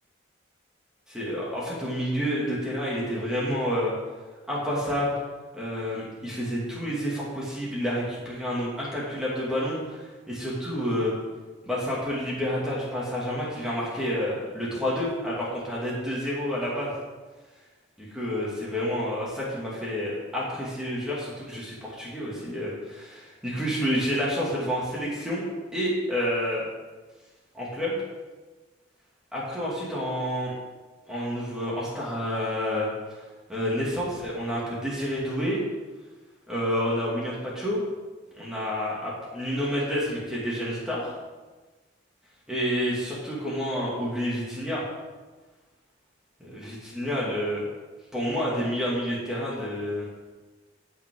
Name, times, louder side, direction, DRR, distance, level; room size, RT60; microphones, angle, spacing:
voice 1, 1.1-3.9 4.5-5.1 5.5-11.1 11.6-16.9 18.0-25.4 25.7-26.6 27.5-28.0 29.3-30.5 31.1-32.9 33.5-35.6 36.5-37.8 38.3-41.1 42.5-44.8 46.4-47.6 48.1-50.1, equal, 5° right, -7 dB, 2.5 m, -29 dB
15.5 x 5.7 x 3.9 m, 1.3 s
head